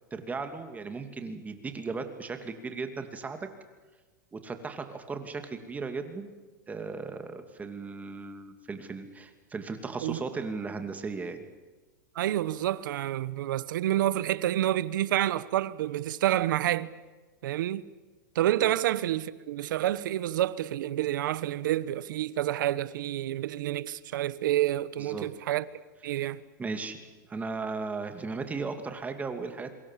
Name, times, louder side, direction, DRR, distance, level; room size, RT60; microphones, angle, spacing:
voice 1, 0.1-3.5 4.3-6.3 6.7-11.4 18.6-18.7 25.0-25.3 26.1-26.3 26.6-27.0 27.3-29.7, right 4 dB, 15° right, 2.6 m, -36 dB
voice 2, 12.1-16.9 17.4-17.9 18.3-25.6 26.0-26.4, right 13 dB, 80° right, 1.1 m, -28 dB
27.0 x 24.5 x 7.6 m
supercardioid pair, 135°, 11 cm